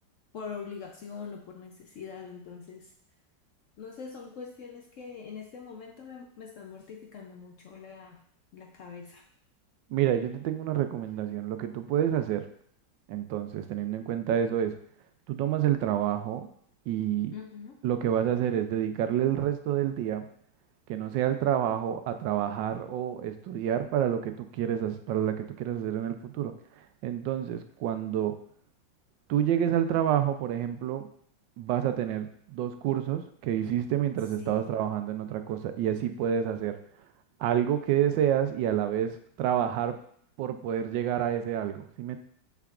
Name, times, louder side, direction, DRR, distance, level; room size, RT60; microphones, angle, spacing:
voice 1, 0.3-2.9 3.8-8.2 8.5-9.3 17.3-17.8 34.4-34.7, left 6 dB, 80° left, 2 dB, 0.7 m, -43 dB
voice 2, 9.9-12.4 13.1-14.7 15.3-16.5 16.9-17.3 17.8-20.2 20.9-26.5 27.0-28.3 29.3-31.1 31.6-36.8 37.4-40.0 40.4-42.2, right 10 dB, 80° right, 8 dB, 1.3 m, -28 dB
6.9 x 5.8 x 2.4 m, 0.64 s
omnidirectional pair, 2.0 m